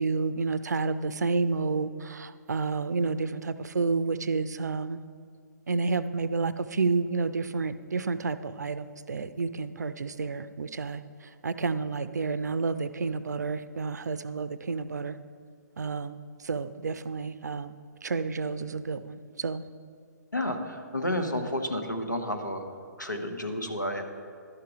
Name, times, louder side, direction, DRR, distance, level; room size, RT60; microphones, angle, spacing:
voice 1, 0.0-5.0 5.7-11.0 11.4-15.2 15.8-16.2 16.4-17.8 18.0-19.6, right 4 dB, 65° right, 14 dB, 0.4 m, -30 dB
voice 2, 20.3-22.7 23.0-24.0, left 1 dB, 90° left, 4 dB, 1.1 m, -31 dB
11.5 x 6.7 x 4.9 m, 2.1 s
figure-of-eight pair, 125°, 10 cm